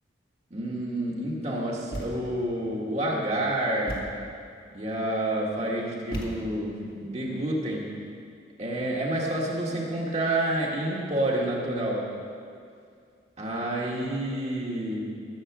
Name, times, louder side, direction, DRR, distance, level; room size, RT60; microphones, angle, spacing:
voice 1, 0.5-4.1 4.7-8.0 8.6-12.1 13.4-15.1, right 1 dB, 35° right, -3 dB, 1.6 m, -29 dB
Thump thud, 1.9-2.5 3.9-4.3 6.1-6.8, equal, 50° left, 1.8 m, -37 dB
14.0 x 7.4 x 6.0 m, 2.3 s
head